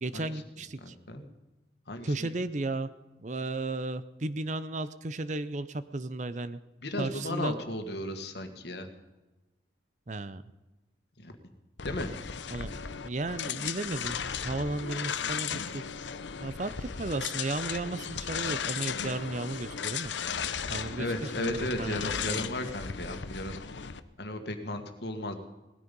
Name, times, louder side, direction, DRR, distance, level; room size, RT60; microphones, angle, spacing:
voice 1, 0.0-0.9 2.0-2.9 3.2-6.6 7.0-7.5 10.1-10.4 12.5-14.2 14.4-15.8 16.4-20.1 20.7-22.4, right 2 dB, 40° right, 14 dB, 0.6 m, -34 dB
voice 2, 0.8-1.3 1.9-2.3 6.8-8.9 11.2-11.4 11.8-12.1 21.0-23.6 24.2-25.3, left 1 dB, 65° left, 6 dB, 1.9 m, -35 dB
sound 1, 11.8-24.0, left 7 dB, 80° left, 0.8 m, -36 dB
18.5 x 13.5 x 5.4 m, 1.1 s
head